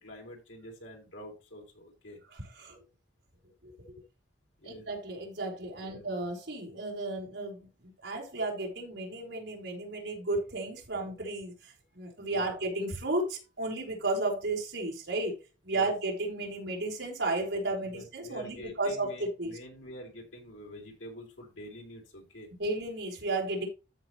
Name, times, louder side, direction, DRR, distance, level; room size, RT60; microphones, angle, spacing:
voice 1, 0.0-2.2 4.6-4.9 5.8-6.0 12.3-12.6 15.7-15.9 17.8-22.5, equal, 85° left, 3.9 m, -47 dB
voice 2, 2.3-2.8 3.6-3.7 4.6-15.4 15.6-19.5 22.6-23.7, right 2 dB, 70° right, 4.4 m, -33 dB
13.5 x 5.9 x 3.1 m
head